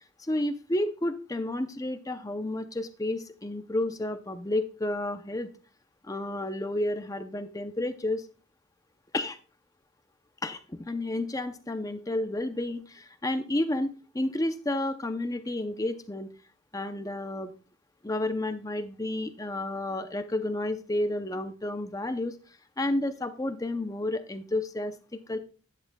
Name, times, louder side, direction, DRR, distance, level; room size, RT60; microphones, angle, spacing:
voice 1, 0.2-5.5 6.0-8.3 9.1-9.4 10.4-16.3 16.7-17.5 18.0-22.4 22.8-24.9 25.3-25.4, left 1 dB, 15° left, 9 dB, 0.5 m, -31 dB
11.5 x 9.9 x 2.3 m, 0.36 s
head